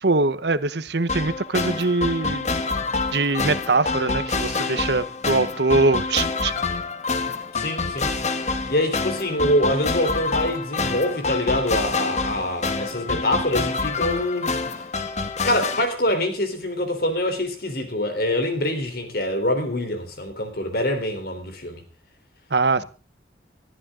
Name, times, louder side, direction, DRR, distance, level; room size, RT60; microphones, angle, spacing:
voice 1, 0.0-2.5 3.1-6.5 22.5-22.8, right 3 dB, 70° right, 1.0 m, -22 dB
sound 1, 1.1-15.8, left 4 dB, 40° left, 1.4 m, -27 dB
voice 2, 7.5-8.1 8.7-14.5 15.4-21.8, left 1 dB, 55° left, 3.8 m, -25 dB
20.0 x 14.0 x 3.8 m
head